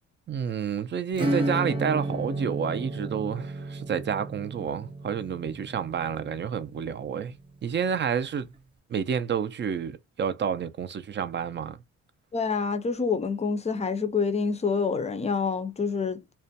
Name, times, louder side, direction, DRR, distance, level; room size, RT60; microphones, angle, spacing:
voice 1, 0.3-7.3 7.6-8.5 8.9-11.8, right 7 dB, 35° right, 0.5 m, -29 dB
Acoustic guitar / Strum, 1.1-7.4, right 1 dB, 15° right, 0.8 m, -33 dB
voice 2, 12.3-16.3, left 5 dB, 20° left, 0.5 m, -27 dB
2.4 x 2.2 x 2.6 m
cardioid pair, 90°, 30 cm